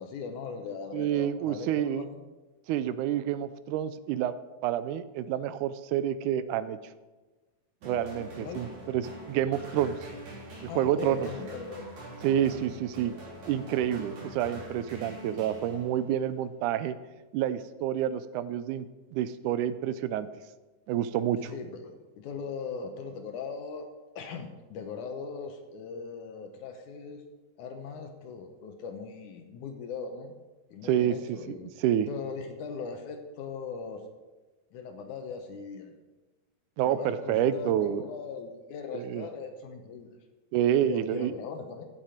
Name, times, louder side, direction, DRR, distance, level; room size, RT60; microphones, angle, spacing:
voice 1, 0.0-2.2 8.4-8.7 10.7-11.9 12.4-12.7 21.4-23.9 24.2-27.2 27.6-30.3 30.7-31.7 32.1-34.0 34.7-36.0 36.9-40.2 40.8-41.9, left 5 dB, 75° left, 6 dB, 2.3 m, -39 dB
voice 2, 0.9-2.1 2.7-4.4 4.6-6.8 7.8-10.0 10.6-11.3 12.2-13.1 13.5-17.0 17.3-20.3 20.9-21.5 30.8-32.1 36.8-38.0 38.9-39.3 40.5-41.3, right 10 dB, 80° right, 14 dB, 2.0 m, -28 dB
sound 1, 7.8-16.2, right 1 dB, 60° right, 4.5 m, -44 dB
15.5 x 7.4 x 5.1 m, 1.2 s
omnidirectional pair, 3.8 m